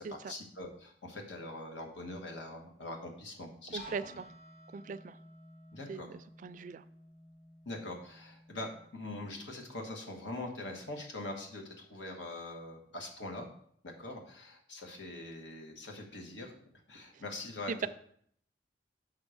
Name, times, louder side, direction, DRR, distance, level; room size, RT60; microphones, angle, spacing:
voice 1, 0.0-3.8 4.1-4.2 5.7-6.1 7.6-13.5 13.8-17.9, left 2 dB, 90° left, 2 dB, 1.3 m, -43 dB
sound 1, 3.8-9.6, right 1 dB, 55° left, 3.4 m, -55 dB
voice 2, 4.7-5.2 5.9-6.1 6.4-6.8 17.7-17.9, right 5 dB, 45° right, 14 dB, 0.3 m, -38 dB
6.2 x 3.8 x 6.2 m, 0.65 s
head